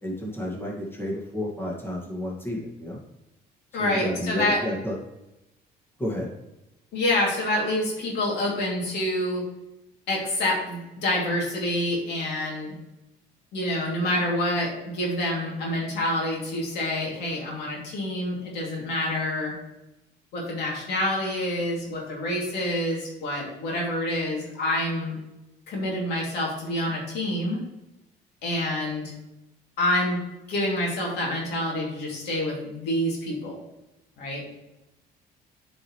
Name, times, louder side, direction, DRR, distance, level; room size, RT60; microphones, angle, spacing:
voice 1, 0.0-3.0 3.8-5.0 6.0-6.3, equal, 15° left, -3 dB, 1.9 m, -31 dB
voice 2, 3.7-4.6 6.9-9.4 10.1-12.7 13.5-19.5 20.3-25.2 25.7-27.6 28.4-29.1 29.8-30.2 30.5-33.6 34.2-34.4, left 1 dB, 80° left, -2 dB, 2.7 m, -27 dB
9.6 x 5.0 x 3.2 m, 0.95 s
cardioid pair, 110°, 17 cm